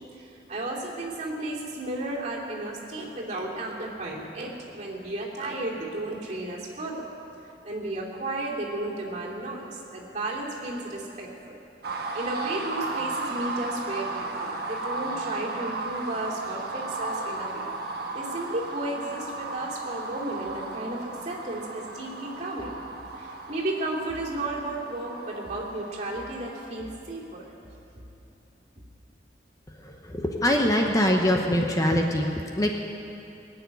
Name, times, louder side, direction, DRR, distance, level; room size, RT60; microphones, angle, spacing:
voice 1, 0.2-7.1 7.6-11.6 12.1-17.7 18.1-22.8 23.2-27.5, right 2 dB, 40° right, -4 dB, 2.8 m, -33 dB
sound 1, 11.8-26.7, right 3 dB, 60° right, 1.3 m, -35 dB
voice 2, 29.8-32.7, left 1 dB, 20° left, 2 dB, 0.9 m, -23 dB
20.0 x 7.0 x 9.5 m, 2.8 s
head